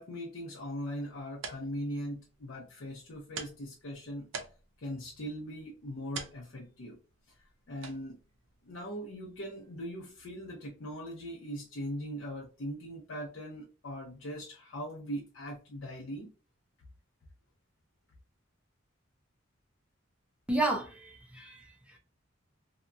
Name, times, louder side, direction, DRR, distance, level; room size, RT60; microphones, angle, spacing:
voice 1, 0.0-4.3 4.8-7.0 7.7-8.2 8.6-16.3, equal, 80° left, 0.6 m, -40 dB
sound 1, 1.0-10.2, right 5 dB, 75° right, 0.5 m, -49 dB
voice 2, 20.5-22.0, right 2 dB, 5° right, 0.5 m, -32 dB
2.8 x 2.3 x 2.5 m
head